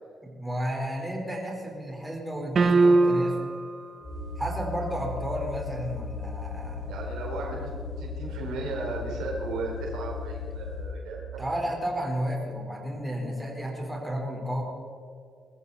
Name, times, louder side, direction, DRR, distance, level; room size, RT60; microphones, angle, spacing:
voice 1, 0.2-3.4 4.4-6.9 11.4-14.6, equal, 5° right, -1 dB, 4.3 m, -32 dB
sound 1, 2.6-3.6, right 3 dB, 45° right, 1.0 m, -20 dB
sound 2, 4.0-10.9, left 4 dB, 30° left, 4.5 m, -36 dB
voice 2, 6.9-7.7 8.0-11.5, right 3 dB, 85° right, -1 dB, 4.4 m, -35 dB
21.0 x 14.5 x 4.2 m, 2.3 s
cardioid pair, 90°, 0 cm